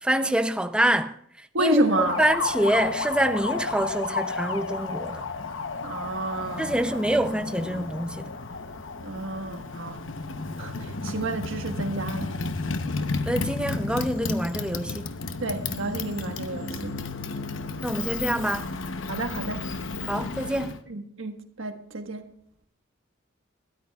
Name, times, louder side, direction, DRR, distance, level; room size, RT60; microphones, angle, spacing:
voice 1, 0.0-5.3 6.6-8.3 13.2-15.1 17.8-18.7 20.1-20.8, right 1 dB, 5° right, 0.5 m, -26 dB
voice 2, 1.5-2.2 5.8-6.8 7.1-7.2 9.0-10.0 10.6-12.4 15.4-17.0 19.1-19.6 20.9-22.3, right 1 dB, 90° right, 1.4 m, -29 dB
Motorcycle, 1.8-20.8, left 4 dB, 75° left, 0.9 m, -32 dB
21.0 x 13.0 x 2.4 m
head